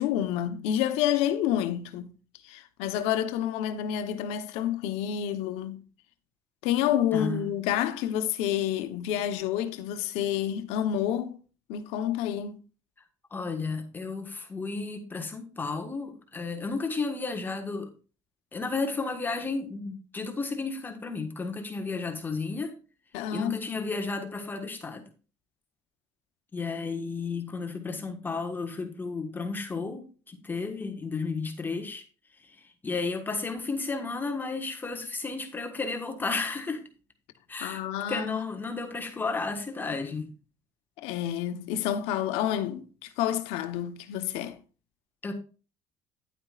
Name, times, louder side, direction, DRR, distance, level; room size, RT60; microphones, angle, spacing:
voice 1, 0.0-2.1 2.4-5.8 6.6-11.4 11.7-12.6 23.1-23.6 37.6-38.4 41.0-44.6, left 10 dB, 85° left, 1.0 m, -29 dB
voice 2, 7.1-7.5 13.3-17.9 18.5-22.7 23.3-25.0 26.5-32.1 32.3-36.9 37.5-40.3 45.2-45.3, left 4 dB, 20° left, 1.4 m, -33 dB
10.0 x 8.9 x 2.4 m
cardioid pair, 120°, 10 cm